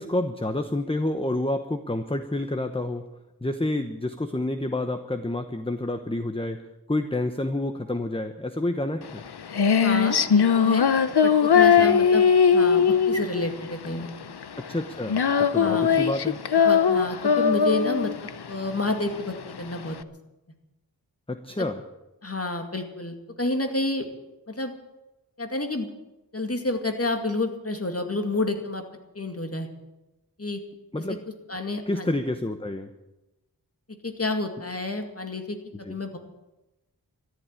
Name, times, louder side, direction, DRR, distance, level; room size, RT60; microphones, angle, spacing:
voice 1, 0.0-3.0 3.4-6.6 6.9-9.2 11.8-11.9 14.6-16.4 21.3-21.8 30.9-31.2 31.9-32.9 35.8-36.0, left 1 dB, 15° left, 7 dB, 1.0 m, -29 dB
Female singing, 9.0-20.0, left 6 dB, 80° left, 0.8 m, -20 dB
voice 2, 9.8-10.9 11.2-14.1 15.6-15.9 16.5-20.0 21.6-21.7 22.2-24.1 24.5-24.7 25.4-25.9 26.3-28.8 29.1-29.7 30.4-30.6 31.0-31.1 31.5-32.1 34.0-36.2, left 2 dB, 40° left, 5 dB, 2.3 m, -29 dB
13.5 x 11.0 x 9.0 m, 1.0 s
wide cardioid pair, 50°, 38 cm